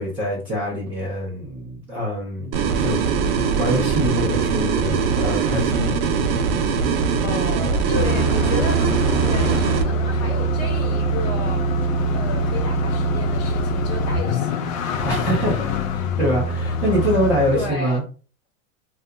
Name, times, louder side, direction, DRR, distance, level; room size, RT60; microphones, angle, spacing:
voice 1, 0.0-3.0 3.6-6.0 15.0-18.0, equal, 5° right, 0.4 m, -24 dB
sound 1, 2.5-9.8, right 5 dB, 50° right, 0.6 m, -21 dB
voice 2, 7.2-11.6 12.1-14.6 17.5-18.0, left 3 dB, 35° left, 0.6 m, -32 dB
sound 2, 7.9-17.8, equal, 85° left, 0.6 m, -23 dB
2.7 x 2.3 x 3.5 m
supercardioid pair, 175°, 39 cm